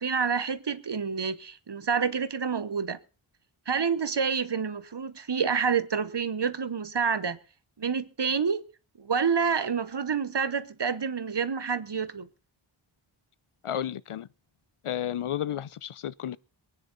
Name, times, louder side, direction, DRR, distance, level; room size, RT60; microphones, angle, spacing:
voice 1, 0.0-3.0 3.7-7.4 7.8-8.6 9.0-12.3, right 6 dB, 55° right, 1.0 m, -28 dB
voice 2, 13.6-14.3 14.8-16.4, left 10 dB, 85° left, 0.6 m, -32 dB
23.0 x 9.8 x 4.0 m
wide cardioid pair, 60°, 50 cm